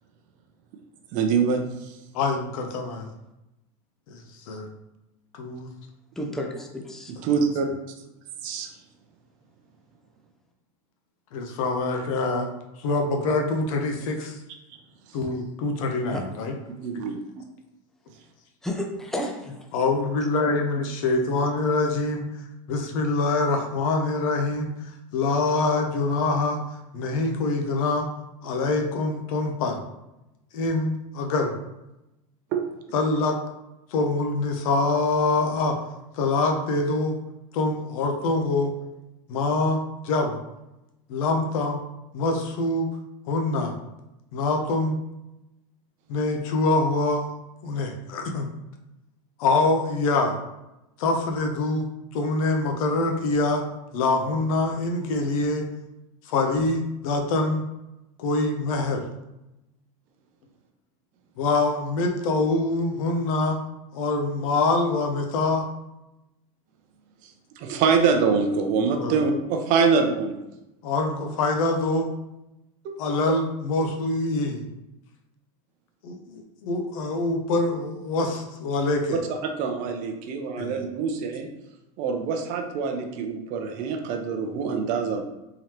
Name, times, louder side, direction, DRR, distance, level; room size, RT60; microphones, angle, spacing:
voice 1, 1.1-2.0 7.2-7.7 8.4-8.7 16.8-17.4 32.5-32.6 67.6-70.3 72.8-73.0 79.3-81.5 82.0-85.2, right 5 dB, 50° right, 4 dB, 0.6 m, -25 dB
voice 2, 2.1-3.1 4.1-4.2 4.5-4.7 5.3-5.7 11.3-12.5 12.8-14.4 15.1-16.5 19.7-22.3 22.7-24.7 25.1-26.6 26.9-28.1 28.4-29.8 30.5-31.6 32.9-33.4 33.9-35.8 36.2-37.2 37.5-38.7 39.3-39.8 40.0-40.4 41.1-41.8 42.1-42.9 43.3-43.7 44.3-45.0 46.1-47.3 47.6-48.5 49.4-50.4 51.0-51.9 52.1-53.6 53.9-55.7 56.3-57.6 58.2-59.1 61.4-63.6 63.9-65.7 69.0-69.2 70.8-72.1 73.0-74.6 76.0-79.2 80.6-80.8, left 3 dB, 70° left, 3 dB, 0.7 m, -24 dB
voice 3, 6.2-7.1 16.1-16.3 18.6-19.8, left 1 dB, ahead, 1 dB, 0.4 m, -32 dB
3.8 x 3.1 x 2.9 m, 0.93 s
supercardioid pair, 135°, 18 cm